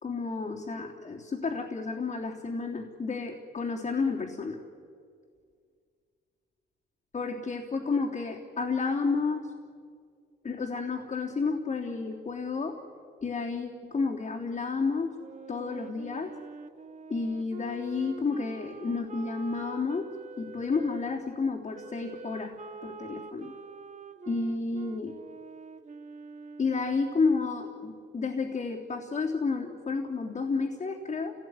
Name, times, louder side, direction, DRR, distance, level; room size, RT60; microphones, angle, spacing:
voice 1, 0.0-4.6 7.1-9.5 10.4-12.8 13.2-15.1 15.5-16.3 17.1-20.1 20.4-22.5 22.8-23.5 24.3-25.1 26.6-31.3, left 4 dB, 40° left, -4 dB, 3.5 m, -31 dB
Wind instrument woodwind instrument, 15.2-21.1 21.7-27.6, right 4 dB, 40° right, 1.7 m, -45 dB
28.5 x 18.0 x 9.9 m, 2.2 s
cardioid pair, 90°, 20 cm